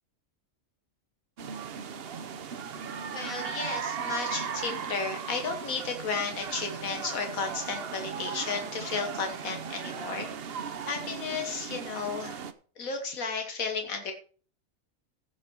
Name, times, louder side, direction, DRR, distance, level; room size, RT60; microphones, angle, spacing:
sound 1, 1.4-12.5, right 7 dB, 50° right, 0.9 m, -37 dB
voice 1, 3.1-10.3 10.8-12.4 12.8-14.1, left 4 dB, 90° left, 4 dB, 1.8 m, -33 dB
16.0 x 5.8 x 4.5 m, 0.43 s
omnidirectional pair, 1.4 m